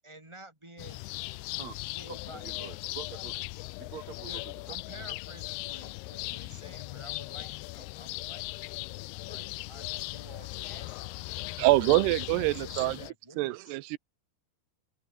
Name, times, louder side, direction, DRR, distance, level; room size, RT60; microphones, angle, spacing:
voice 1, 0.0-1.1 1.9-2.7 4.2-8.4 9.3-11.9 12.3-13.7, right 2 dB, 5° right, 4.9 m, -51 dB
sound 1, 0.8-13.1, left 23 dB, 85° left, 2.6 m, -39 dB
voice 2, 1.6-3.4 3.8-4.8, right 9 dB, 50° right, 2.6 m, -46 dB
voice 3, 11.6-13.0 13.4-14.0, right 20 dB, 90° right, 2.8 m, -25 dB
omnidirectional pair, 4.6 m